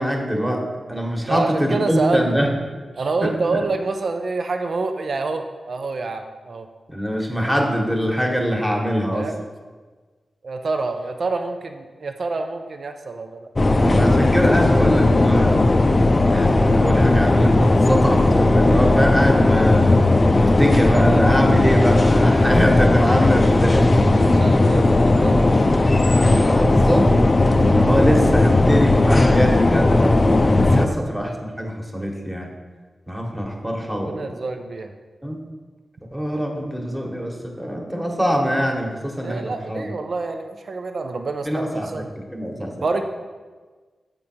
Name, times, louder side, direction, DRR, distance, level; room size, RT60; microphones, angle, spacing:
voice 1, 0.0-2.5 3.2-3.7 6.9-9.3 13.6-15.6 16.2-19.9 20.3-23.9 25.1-25.3 26.4-30.2 30.7-32.5 33.1-34.4 35.2-35.4 36.1-39.9 41.4-42.9, equal, 10° right, 1 dB, 1.3 m, -23 dB
voice 2, 1.3-2.2 3.0-6.7 9.1-9.4 10.4-13.5 20.9-21.0 24.1-25.4 30.7-30.8 33.9-34.9 39.2-42.1 42.8-43.0, right 3 dB, 65° right, 6 dB, 0.5 m, -27 dB
sound 1, 13.6-30.9, left 2 dB, 40° left, 0.4 m, -16 dB
7.1 x 5.2 x 4.4 m, 1.4 s
cardioid pair, 50°, 0 cm